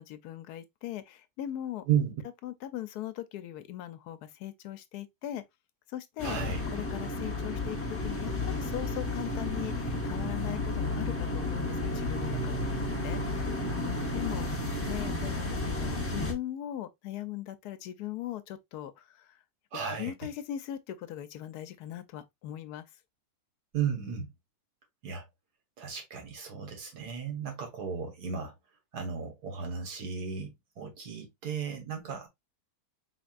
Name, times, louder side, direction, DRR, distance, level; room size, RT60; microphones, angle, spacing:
voice 1, 0.0-1.9 2.4-5.4 5.9-6.4 6.7-19.4 19.9-22.9, left 12 dB, 80° left, 1.1 m, -40 dB
sound 1, 6.2-16.3, left 2 dB, 15° left, 0.6 m, -32 dB
voice 2, 6.2-6.6 13.1-13.2 19.7-20.1 23.7-24.3 25.0-25.2 25.8-28.5 28.9-32.3, right 7 dB, 85° right, 1.9 m, -34 dB
4.3 x 3.5 x 2.4 m
omnidirectional pair, 1.7 m